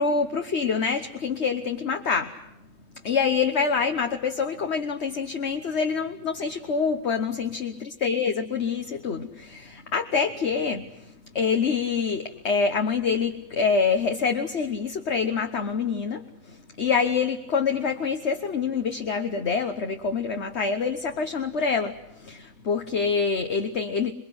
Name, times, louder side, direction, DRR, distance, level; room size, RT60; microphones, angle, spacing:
voice 1, 0.0-2.3 3.0-24.1, left 5 dB, 55° left, 5 dB, 1.5 m, -26 dB
28.0 x 22.0 x 8.0 m, 0.83 s
omnidirectional pair, 1.4 m